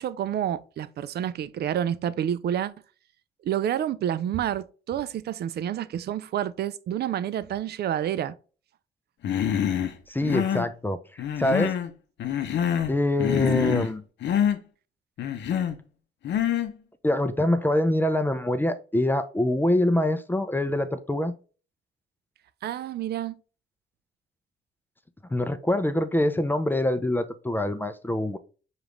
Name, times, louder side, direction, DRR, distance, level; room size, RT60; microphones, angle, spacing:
voice 1, 0.0-2.7 3.4-8.4 13.6-13.7 22.6-23.3, right 10 dB, 55° right, 0.4 m, -29 dB
Human voice, 9.2-9.9 10.2-10.7 11.2-11.9 12.2-12.9 13.2-13.9 14.2-14.6 15.2-15.8 16.2-16.7, left 9 dB, 65° left, 0.6 m, -26 dB
voice 2, 10.1-11.0 11.4-11.7 12.9-14.0 17.0-21.3 25.3-28.4, left 1 dB, 10° left, 0.4 m, -24 dB
5.0 x 2.5 x 3.1 m
cardioid pair, 90°, 20 cm